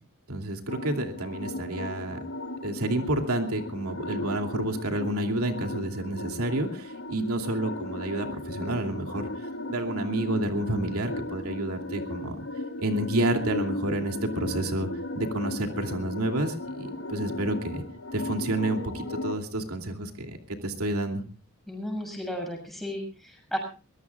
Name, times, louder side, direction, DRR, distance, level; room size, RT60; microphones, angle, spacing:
voice 1, 0.3-2.2 2.6-9.3 9.7-12.4 12.8-14.9 15.1-17.8 18.1-21.2, right 1 dB, 90° right, 4 dB, 2.8 m, -29 dB
sound 1, 0.7-19.4, left 2 dB, 85° left, 2.5 m, -36 dB
voice 2, 21.7-23.6, equal, ahead, 2 dB, 7.2 m, -34 dB
24.0 x 21.0 x 2.4 m, 0.34 s
head